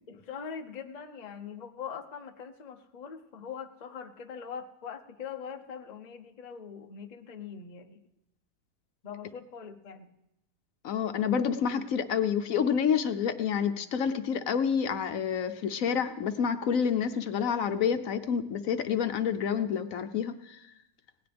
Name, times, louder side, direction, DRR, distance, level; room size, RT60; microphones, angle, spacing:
voice 1, 0.1-8.0 9.0-10.1, left 7 dB, 35° left, 5 dB, 0.7 m, -42 dB
voice 2, 10.8-20.6, left 7 dB, 65° left, 8 dB, 1.1 m, -28 dB
18.0 x 17.5 x 3.4 m, 0.86 s
omnidirectional pair, 1.6 m